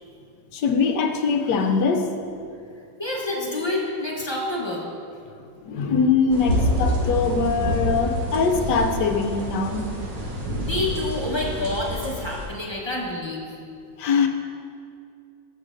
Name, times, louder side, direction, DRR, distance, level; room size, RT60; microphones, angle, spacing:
voice 1, 0.5-2.1 5.6-9.9 14.0-14.3, left 5 dB, 70° left, 5 dB, 1.2 m, -22 dB
voice 2, 3.0-4.9 10.7-13.5, left 2 dB, 20° left, -4 dB, 0.7 m, -28 dB
sound 1, 6.3-12.5, equal, 70° right, 2.0 m, -27 dB
14.5 x 7.3 x 2.6 m, 2.5 s
omnidirectional pair, 2.0 m